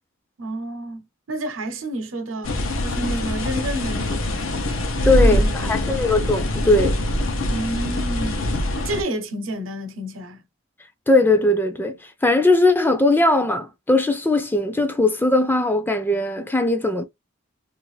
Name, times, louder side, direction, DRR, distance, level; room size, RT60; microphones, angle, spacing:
voice 1, 0.4-4.7 5.0-6.1 7.5-10.4, right 1 dB, 85° right, 0.8 m, -30 dB
sound 1, 2.4-9.0, left 1 dB, 85° left, 0.7 m, -23 dB
voice 2, 5.0-7.0 11.1-12.0 12.2-17.1, left 2 dB, 10° left, 0.4 m, -19 dB
2.5 x 2.5 x 3.1 m
head